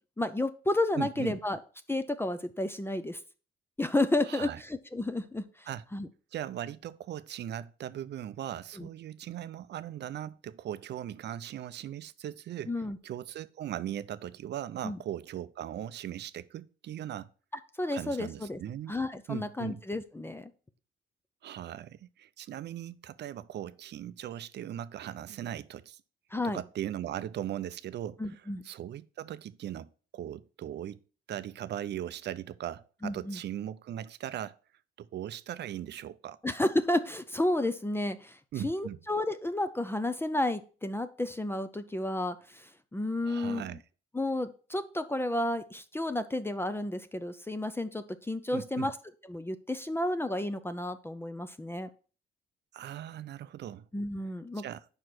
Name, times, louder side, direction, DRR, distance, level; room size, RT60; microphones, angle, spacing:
voice 1, 0.2-1.6 1.9-3.2 3.8-6.1 8.7-8.9 12.7-13.0 14.8-15.0 17.8-18.6 18.9-20.5 26.3-26.6 28.2-28.7 33.0-33.4 36.4-38.4 38.6-43.7 44.1-48.9 49.3-51.9 53.9-54.6, left 1 dB, 10° left, 0.5 m, -31 dB
voice 2, 1.0-1.4 4.3-4.6 5.7-5.8 6.3-12.7 13.0-17.3 17.9-18.9 19.3-19.8 21.4-26.0 26.4-31.0 31.3-34.5 35.0-36.4 38.5-39.0 43.2-43.8 48.5-48.9 52.7-53.8 54.5-54.8, right 11 dB, 60° right, 0.5 m, -39 dB
5.4 x 4.8 x 6.0 m
cardioid pair, 90°, 20 cm